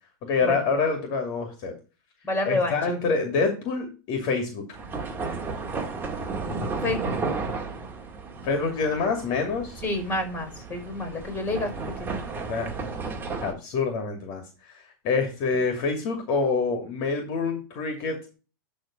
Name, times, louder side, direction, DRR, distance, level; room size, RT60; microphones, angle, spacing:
voice 1, 0.2-1.7 2.5-4.6 8.4-9.8 12.5-12.7 13.4-14.4 14.7-18.3, left 4 dB, 45° left, 5 dB, 2.5 m, -26 dB
voice 2, 2.2-2.9 6.4-7.2 9.8-11.7 12.0-12.3, left 2 dB, 15° left, 6 dB, 4.7 m, -29 dB
sound 1, 4.7-13.5, right 4 dB, 15° right, 2.0 m, -33 dB
11.5 x 3.9 x 5.2 m, 0.32 s
hypercardioid pair, 115°, 12 cm